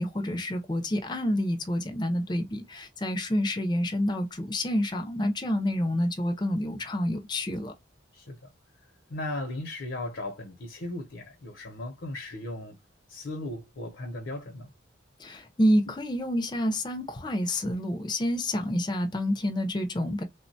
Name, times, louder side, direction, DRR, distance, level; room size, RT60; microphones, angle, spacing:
voice 1, 0.0-7.7 15.2-20.2, equal, 20° left, 0.4 m, -28 dB
voice 2, 8.1-8.5 9.1-12.8 13.1-14.7, left 1 dB, 70° left, 0.6 m, -37 dB
3.4 x 2.1 x 2.6 m
head